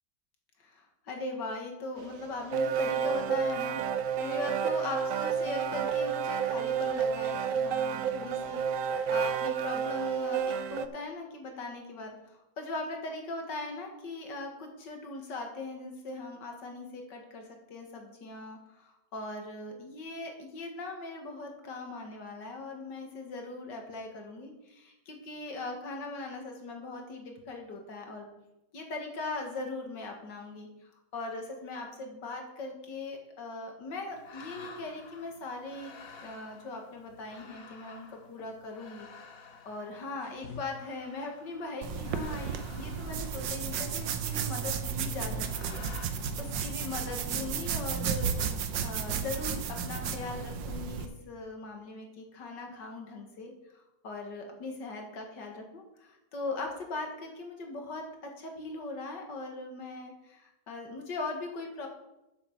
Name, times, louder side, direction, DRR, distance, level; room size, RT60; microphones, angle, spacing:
voice 1, 0.6-28.3 28.7-35.9 36.2-48.3 48.8-61.9, left 2 dB, 75° left, 3 dB, 2.5 m, -40 dB
sound 1, 2.0-10.9, right 7 dB, 70° right, 0.8 m, -30 dB
sound 2, 34.1-46.1, left 5 dB, 55° left, 1.5 m, -51 dB
sound 3, 41.8-51.1, right 6 dB, 85° right, 1.6 m, -33 dB
7.8 x 7.2 x 6.9 m, 0.93 s
omnidirectional pair, 1.9 m